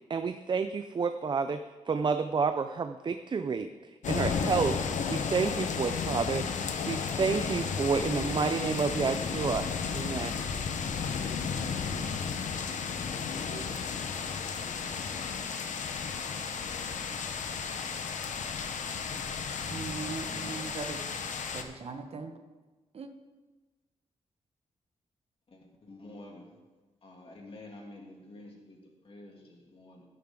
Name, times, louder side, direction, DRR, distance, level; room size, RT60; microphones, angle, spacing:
voice 1, 0.1-3.7 4.1-4.8 5.1-6.5 6.9-9.7 9.9-10.4 13.3-13.6, right 5 dB, 40° right, 9 dB, 0.5 m, -30 dB
sound 1, 4.0-21.6, left 6 dB, 80° left, 1.0 m, -33 dB
voice 2, 19.6-21.0 21.5-22.3 22.9-23.1, right 4 dB, 55° right, 6 dB, 1.1 m, -39 dB
voice 3, 20.3-20.7 25.5-26.6 27.0-30.0, left 2 dB, 50° left, 0 dB, 2.6 m, -49 dB
11.5 x 11.0 x 3.8 m, 1.2 s
wide cardioid pair, 115°, 13 cm